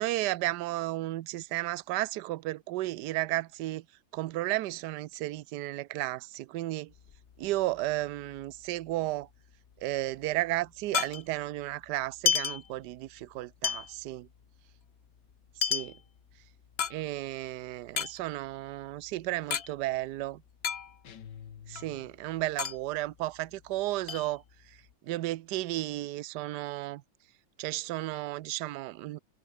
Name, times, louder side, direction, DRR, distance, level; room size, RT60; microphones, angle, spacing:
voice 1, 0.0-3.8 4.1-6.9 7.4-9.3 9.8-14.3 15.7-15.9 16.9-20.4 21.7-24.4 25.0-27.0 27.6-29.2, right 16 dB, 70° right, 1.2 m, -33 dB
sound 1, 6.9-8.6 8.9-9.0 9.2-11.6 12.0-13.3 13.6-17.5 17.8-19.7 20.0-20.1 20.3-21.3 21.6-23.7 24.1-24.9, left 7 dB, 45° left, 0.9 m, -33 dB
sound 2, 21.0-22.4, left 8 dB, 70° left, 2.0 m, -48 dB
omnidirectional pair, 2.0 m